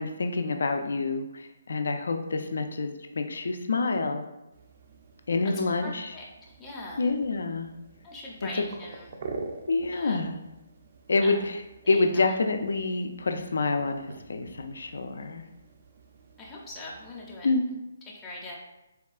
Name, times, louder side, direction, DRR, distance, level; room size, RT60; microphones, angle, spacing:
voice 1, 0.0-4.3 5.3-6.1 7.0-7.7 9.7-10.4 11.1-11.4 11.9-15.4 17.4-17.6, left 3 dB, 75° left, 6 dB, 0.3 m, -27 dB
sound 1, 4.5-17.4, right 4 dB, 50° right, 0.4 m, -46 dB
voice 2, 5.4-7.1 8.0-9.2 9.9-10.2 11.2-11.4 11.8-12.3 16.4-17.8 18.1-18.6, left 2 dB, 10° left, -5 dB, 0.5 m, -42 dB
3.4 x 2.2 x 2.3 m, 0.96 s
figure-of-eight pair, 145°, 0 cm